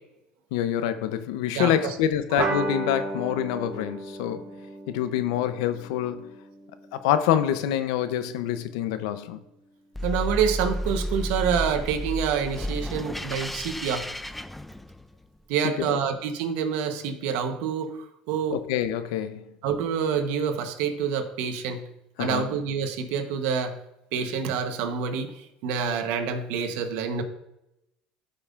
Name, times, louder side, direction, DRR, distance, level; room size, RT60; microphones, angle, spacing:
voice 1, 0.5-4.5 4.9-6.3 6.9-9.4 15.6-16.0 18.5-19.5 22.2-22.5, left 10 dB, 85° left, 0.6 m, -26 dB
voice 2, 1.5-1.9 10.0-14.1 15.5-17.9 18.3-18.6 19.6-21.9 22.2-23.8 24.1-25.3 25.6-27.2, right 7 dB, 75° right, 1.0 m, -27 dB
sound 1, 2.4-7.3, right 3 dB, 50° right, 1.7 m, -34 dB
sound 2, 9.9-15.2, equal, 5° left, 0.3 m, -32 dB
13.0 x 5.3 x 2.5 m
supercardioid pair, 100°, 3 cm